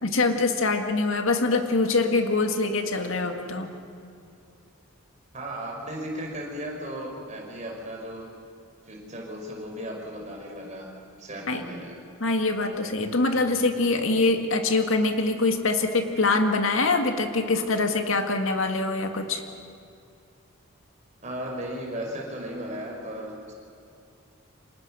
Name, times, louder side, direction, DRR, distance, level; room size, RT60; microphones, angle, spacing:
voice 1, 0.0-3.7 11.5-11.6 12.2-19.4, left 3 dB, 70° left, 6 dB, 1.9 m, -24 dB
voice 2, 5.3-8.3 8.9-10.9 11.2-12.0 21.2-23.5, equal, 35° right, 0 dB, 5.1 m, -35 dB
29.0 x 25.5 x 6.3 m, 2.5 s
head